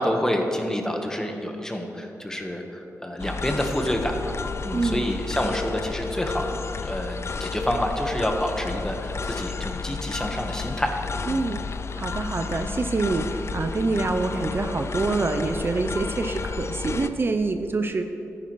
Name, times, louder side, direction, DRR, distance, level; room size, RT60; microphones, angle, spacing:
voice 1, 0.0-4.4 4.6-6.5 6.8-11.0 11.3-11.4, equal, 10° left, 3 dB, 1.2 m, -28 dB
sound 1, 3.2-17.1, left 4 dB, 50° left, 0.4 m, -32 dB
voice 2, 4.7-5.1 11.3-11.6 11.9-18.0, right 3 dB, 40° right, 6 dB, 0.5 m, -26 dB
13.5 x 9.9 x 3.1 m, 2.9 s
cardioid pair, 75°, 6 cm